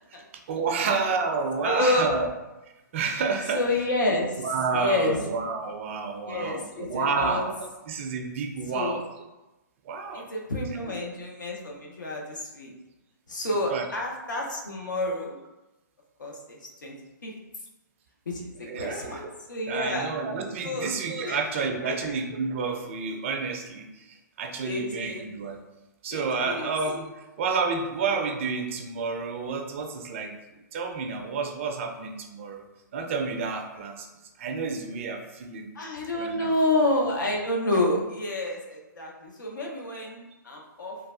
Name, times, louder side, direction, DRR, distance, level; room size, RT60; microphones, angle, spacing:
voice 1, 0.5-2.3 2.9-3.6 4.4-9.1 9.8-10.3 10.8-11.1 13.7-13.9 18.6-19.3 19.7-25.6 26.0-27.1 27.4-30.4 30.7-32.7 32.9-34.1 34.4-35.7 36.1-36.5, right 4 dB, 40° right, 4 dB, 0.4 m, -30 dB
voice 2, 1.6-2.2 3.5-4.4 4.7-5.2 6.3-7.4 8.7-9.0 10.1-12.7 13.3-15.4 16.2-16.3 16.6-16.9 17.2-17.3 18.3-18.5 18.8-19.2 19.5-20.1 20.6-20.9 21.2-21.7 24.6-25.2 26.1-26.7 35.8-41.0, left 1 dB, 80° left, -1 dB, 0.7 m, -29 dB
3.2 x 2.2 x 2.4 m, 1.0 s
figure-of-eight pair, 135°, 10 cm